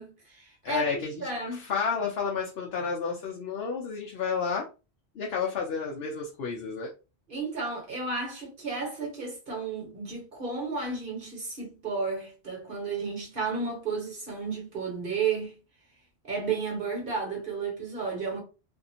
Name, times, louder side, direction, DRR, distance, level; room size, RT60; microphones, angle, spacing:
voice 1, 0.0-1.6 7.3-15.6 16.2-18.4, right 4 dB, 55° right, 1.3 m, -33 dB
voice 2, 0.6-4.7 5.2-6.9, left 5 dB, 70° left, 0.9 m, -31 dB
2.7 x 2.5 x 2.7 m
omnidirectional pair, 1.1 m